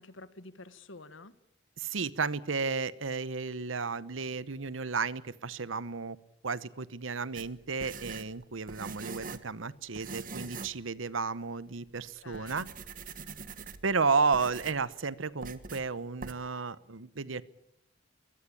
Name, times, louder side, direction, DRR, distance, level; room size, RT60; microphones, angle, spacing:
voice 1, 0.0-1.3 11.9-12.7, left 3 dB, 85° left, 14 dB, 1.5 m, -50 dB
voice 2, 1.8-6.2 6.4-12.7 13.8-17.4, right 4 dB, 90° right, 18 dB, 1.0 m, -32 dB
sound 1, 7.3-9.5 9.9-10.8 11.1-11.2 11.9-12.0 12.3-13.9 14.3-14.9 15.4-15.8 16.2-16.3, right 4 dB, 45° right, 1.4 m, -43 dB
23.5 x 18.5 x 8.5 m, 0.81 s
head